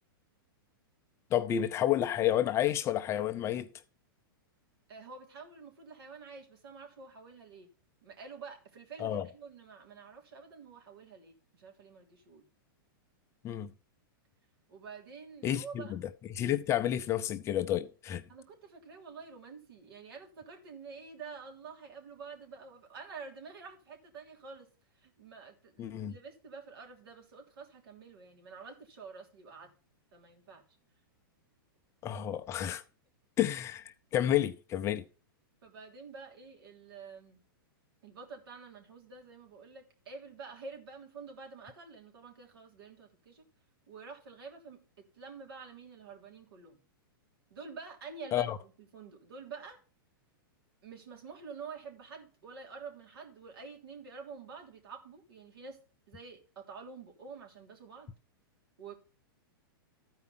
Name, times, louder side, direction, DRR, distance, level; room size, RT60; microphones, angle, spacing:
voice 1, 1.3-3.7 9.0-9.3 13.4-13.7 15.4-16.0 16.3-18.2 25.8-26.1 32.0-32.8 33.4-35.0 48.3-48.6, left 11 dB, 20° left, 0.5 m, -30 dB
voice 2, 4.9-7.7 8.0-12.4 14.7-16.0 18.3-24.7 25.0-29.7 30.1-30.6 35.6-37.4 38.0-43.4 43.9-46.8 47.5-49.8 50.8-55.8 56.1-58.1 58.8-58.9, right 5 dB, 85° right, 3.3 m, -48 dB
13.5 x 4.8 x 5.6 m
hypercardioid pair, 145°, 12 cm